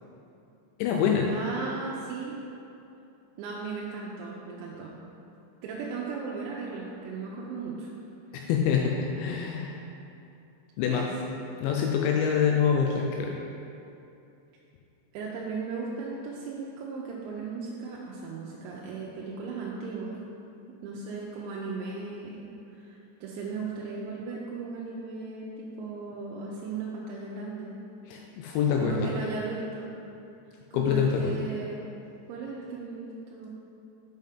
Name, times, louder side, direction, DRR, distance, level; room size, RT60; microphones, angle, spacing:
voice 1, 0.8-1.4 8.3-9.7 10.8-11.0 11.6-13.4 28.1-29.1 30.7-31.3, left 7 dB, 85° left, 0 dB, 2.7 m, -25 dB
voice 2, 1.3-2.4 3.4-4.9 5.6-7.9 10.9-11.1 15.1-20.2 20.7-27.8 28.8-29.9 30.7-31.8 32.3-33.5, right 4 dB, 85° right, -4 dB, 2.9 m, -36 dB
7.3 x 5.6 x 3.6 m, 2.7 s
omnidirectional pair, 5.6 m